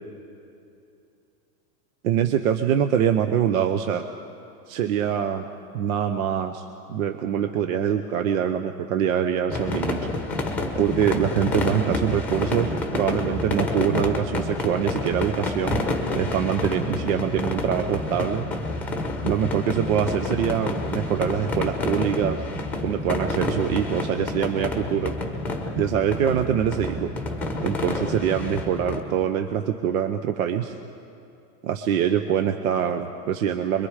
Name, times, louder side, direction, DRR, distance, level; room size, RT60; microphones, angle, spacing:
voice 1, 2.0-4.1 4.7-5.5 5.7-10.0 10.8-15.8 16.1-18.5 19.2-22.5 22.8-25.1 25.7-27.1 27.6-30.7 31.6-33.9, right 9 dB, 60° right, 7 dB, 1.0 m, -24 dB
sound 1, 9.5-29.0, left 2 dB, 5° left, 1.1 m, -28 dB
25.0 x 22.5 x 4.9 m, 2.7 s
supercardioid pair, 165°, 47 cm